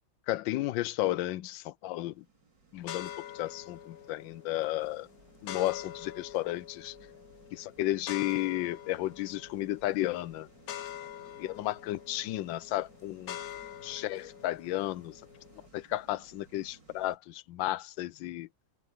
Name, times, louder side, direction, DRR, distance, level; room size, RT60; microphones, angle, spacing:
voice 1, 0.3-2.2 2.7-3.1 3.3-5.1 5.4-6.9 7.5-10.5 11.4-13.4 13.8-15.2 15.7-18.5, left 15 dB, 80° left, 1.3 m, -33 dB
sound 1, 1.9-17.2, right 4 dB, 65° right, 5.3 m, -60 dB
sound 2, 2.8-15.7, left 11 dB, 60° left, 1.0 m, -45 dB
omnidirectional pair, 2.1 m